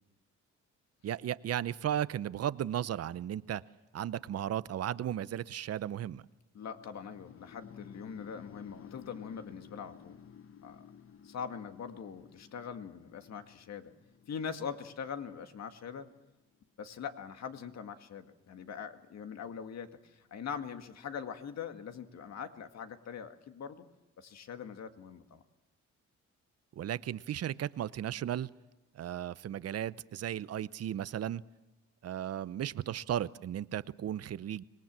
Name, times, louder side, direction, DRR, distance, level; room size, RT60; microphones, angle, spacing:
voice 1, 1.0-3.6 3.9-6.2 26.8-28.5 29.0-31.4 32.0-34.6, right 11 dB, 55° right, 17 dB, 0.7 m, -35 dB
voice 2, 6.5-10.2 10.6-10.8 11.2-13.9 14.3-16.1 16.8-23.9 24.2-25.4, left 7 dB, 60° left, 7 dB, 2.0 m, -42 dB
sound 1, 6.6-16.6, left 7 dB, 45° left, 1.0 m, -55 dB
25.5 x 19.5 x 7.5 m, 0.99 s
cardioid pair, 90°, 30 cm